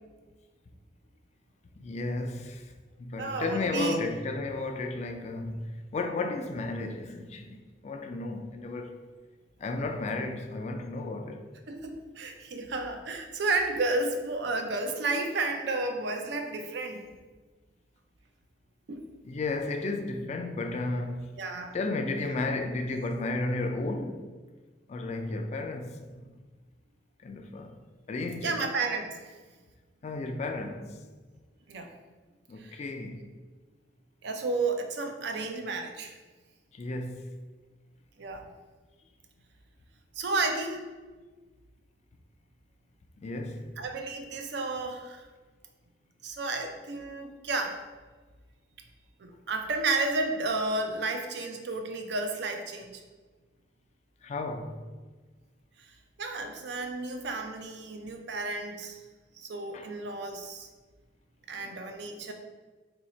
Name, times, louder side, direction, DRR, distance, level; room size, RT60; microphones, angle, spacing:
voice 1, 1.8-2.7 3.0-8.9 9.6-11.4 19.2-21.2 21.7-24.3 24.9-26.3 27.2-27.8 28.1-28.6 30.0-31.0 32.5-33.2 36.7-37.3 43.2-43.7 54.2-54.8 59.7-59.9 61.6-61.7, left 2 dB, 40° left, 0.3 m, -33 dB
voice 2, 3.2-4.0 11.7-17.1 18.9-19.1 21.4-21.8 28.4-29.3 31.7-31.9 32.6-32.8 34.2-36.2 38.2-38.5 40.2-40.9 43.8-45.2 46.2-47.8 49.2-53.0 56.2-59.0 59.4-60.7 61.5-62.3, right 3 dB, 65° right, 0.4 m, -32 dB
2.8 x 2.7 x 4.2 m
head